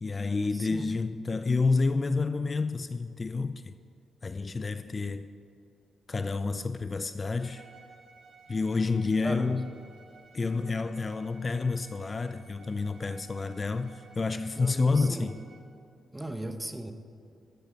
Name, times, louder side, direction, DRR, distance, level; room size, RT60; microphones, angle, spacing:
voice 1, 0.0-3.7 4.2-5.3 6.1-7.6 8.5-9.7 10.3-15.4, left 4 dB, 35° left, 0.3 m, -29 dB
voice 2, 0.5-0.9 9.0-9.6 14.6-15.3 16.1-16.9, right 1 dB, 15° right, 0.8 m, -37 dB
Bowed string instrument, 7.4-15.7, right 4 dB, 70° right, 2.8 m, -55 dB
13.5 x 7.0 x 5.0 m
cardioid pair, 75°, 0 cm